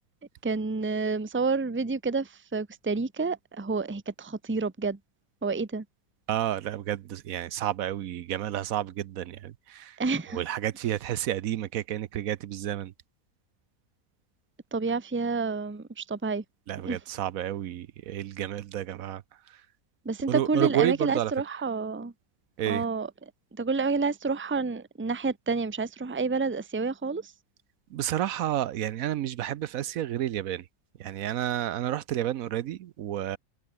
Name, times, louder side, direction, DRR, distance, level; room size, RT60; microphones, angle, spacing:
voice 1, 0.4-5.0 5.4-5.8 10.0-10.4 14.7-16.4 16.8-17.0 20.0-22.1 22.7-23.1 23.5-27.3, right 4 dB, 10° right, 0.7 m, -29 dB
voice 2, 6.3-10.0 10.3-12.9 16.7-19.6 20.3-21.3 22.6-22.9 27.9-30.7 31.0-33.4, right 12 dB, 75° right, 1.1 m, -30 dB
omnidirectional pair, 1.5 m